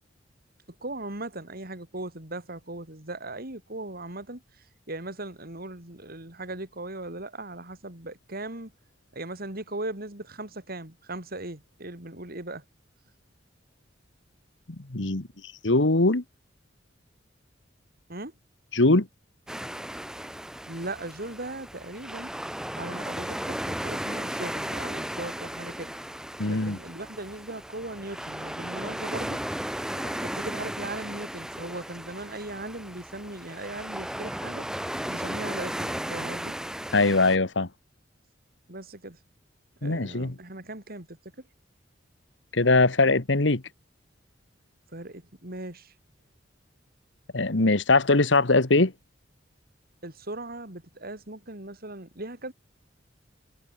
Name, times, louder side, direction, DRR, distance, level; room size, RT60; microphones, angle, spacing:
voice 1, 0.8-8.7 9.1-12.6 18.1-18.4 20.7-22.3 22.8-25.9 26.5-29.4 29.9-34.7 35.1-36.5 38.7-39.2 39.8-41.5 44.9-45.9 50.0-52.5, right 2 dB, 55° right, 6.0 m, -38 dB
voice 2, 14.9-15.3 15.6-16.2 18.7-19.1 26.4-26.8 36.9-37.7 39.8-40.3 42.5-43.6 47.3-48.9, left 2 dB, 70° left, 1.6 m, -21 dB
sound 1, 19.5-37.4, equal, 5° right, 0.9 m, -35 dB
head